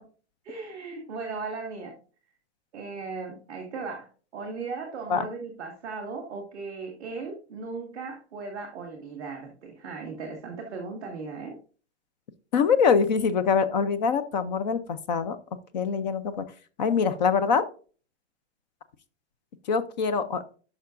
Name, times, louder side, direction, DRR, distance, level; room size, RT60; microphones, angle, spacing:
voice 1, 0.4-1.9 2.7-11.6, right 4 dB, 5° right, -13 dB, 0.3 m, -37 dB
voice 2, 12.5-15.4 15.7-16.4 16.8-17.6 19.7-20.4, left 6 dB, 40° left, 12 dB, 0.6 m, -24 dB
10.0 x 5.8 x 2.5 m, 0.39 s
supercardioid pair, 175°, 34 cm